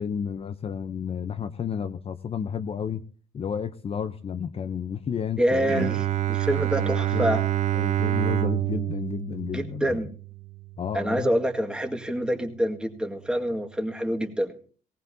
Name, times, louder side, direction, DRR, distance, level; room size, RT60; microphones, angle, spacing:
voice 1, 0.0-3.0 3.3-5.9 6.7-7.3 7.7-10.0 10.8-11.3, left 7 dB, 35° left, 8 dB, 0.7 m, -31 dB
voice 2, 5.4-7.4 9.5-10.1 10.9-14.6, equal, 5° right, 4 dB, 1.8 m, -26 dB
Bowed string instrument, 5.6-11.4, right 14 dB, 45° right, 0.6 m, -27 dB
19.0 x 18.5 x 2.7 m, 0.42 s
cardioid pair, 110°, 17 cm